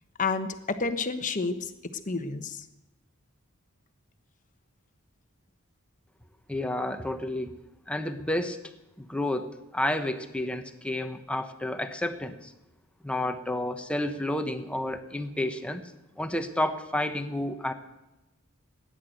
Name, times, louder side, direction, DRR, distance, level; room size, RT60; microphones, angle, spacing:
voice 1, 0.2-1.7 2.1-2.7, left 4 dB, 35° left, 9 dB, 1.2 m, -30 dB
voice 2, 6.5-7.5 7.9-8.6 9.0-12.5 13.0-15.8 16.2-17.7, left 1 dB, 5° left, 7 dB, 1.1 m, -30 dB
17.0 x 10.5 x 8.0 m, 0.97 s
head